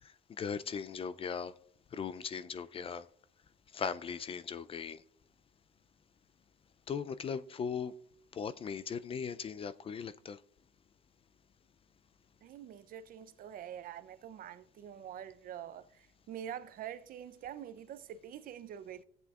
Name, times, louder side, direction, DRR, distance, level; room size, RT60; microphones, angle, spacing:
voice 1, 0.0-1.5 1.9-3.1 3.7-5.0 6.9-7.9 8.3-10.4, left 6 dB, 35° left, 0.4 m, -39 dB
voice 2, 12.4-19.0, right 9 dB, 60° right, 0.6 m, -45 dB
16.0 x 8.0 x 2.4 m
cardioid pair, 110°, 17 cm